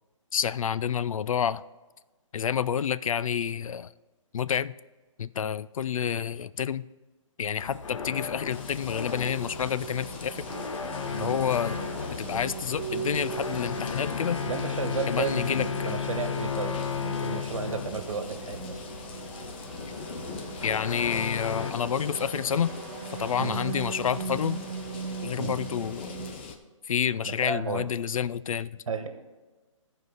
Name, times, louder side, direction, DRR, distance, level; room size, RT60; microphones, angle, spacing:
voice 1, 0.3-1.6 2.3-3.9 4.3-4.7 5.2-6.9 7.4-10.5 11.2-11.8 12.2-14.4 15.1-15.9 20.6-22.7 23.2-24.6 25.2-26.2 26.9-28.8, left 8 dB, 85° left, 18 dB, 0.4 m, -29 dB
sound 1, 7.6-21.7, left 6 dB, 70° left, 0.9 m, -35 dB
sound 2, 8.5-26.6, left 5 dB, 20° left, 0.5 m, -43 dB
sound 3, 8.7-26.3, right 5 dB, 30° right, 1.2 m, -40 dB
voice 2, 14.5-18.8 23.4-23.6 25.4-25.6 27.2-27.9 28.9-29.1, right 5 dB, 75° right, 7 dB, 1.4 m, -33 dB
14.0 x 4.8 x 4.8 m, 1.2 s
hypercardioid pair, 165°, 17 cm